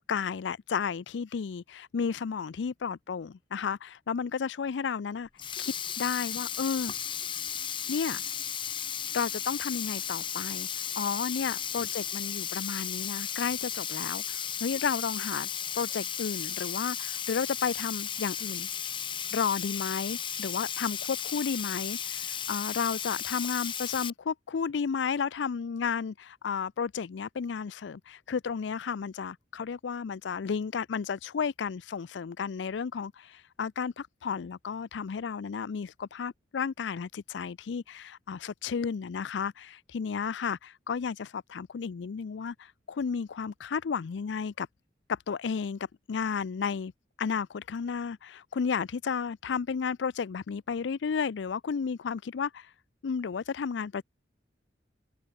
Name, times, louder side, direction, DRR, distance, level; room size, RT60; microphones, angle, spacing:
voice 1, 0.1-5.3 5.6-6.9 7.9-8.2 9.1-15.5 15.7-18.7 19.3-44.7 45.1-46.9 47.2-52.7 53.0-54.0, left 6 dB, 85° left, 0.4 m, -32 dB
Sink (filling or washing), 5.3-24.1, left 8 dB, 30° left, 0.7 m, -35 dB
head